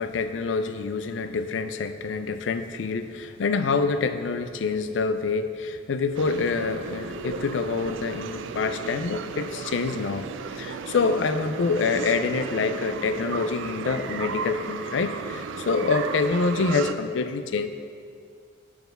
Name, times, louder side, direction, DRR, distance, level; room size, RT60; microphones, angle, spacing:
voice 1, 0.0-17.7, left 4 dB, 80° left, 10 dB, 0.4 m, -26 dB
sound 1, 6.1-16.9, right 5 dB, 90° right, 0.3 m, -34 dB
6.8 x 4.2 x 6.7 m, 2.2 s
head